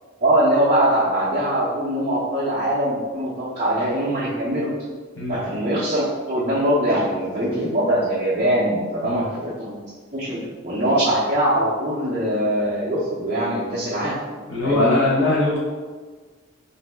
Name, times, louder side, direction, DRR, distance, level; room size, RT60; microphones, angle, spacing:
voice 1, 0.2-4.7 5.3-9.8 10.1-10.4 10.6-14.2 14.6-15.0, right 1 dB, 30° right, -9 dB, 0.5 m, -22 dB
voice 2, 14.5-15.6, left 2 dB, 65° left, -7 dB, 0.9 m, -21 dB
2.8 x 2.5 x 3.2 m, 1.4 s
head